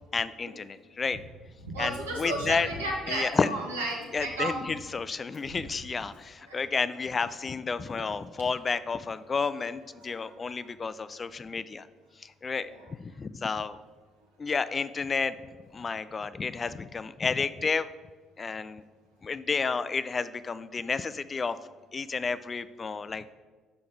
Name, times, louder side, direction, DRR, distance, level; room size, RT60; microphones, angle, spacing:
voice 1, 0.1-1.2 1.8-2.7 3.1-3.5 4.1-11.9 12.2-13.8 14.4-15.3 15.7-17.9 18.4-18.8 19.2-21.6 21.9-23.3, left 5 dB, 35° left, 14 dB, 0.3 m, -31 dB
voice 2, 1.6-4.6 5.5-5.6 6.5-6.6 10.1-10.6 12.6-12.8, right 2 dB, 90° right, -2 dB, 1.2 m, -34 dB
5.9 x 5.7 x 3.8 m, 1.4 s
hypercardioid pair, 50°, 0 cm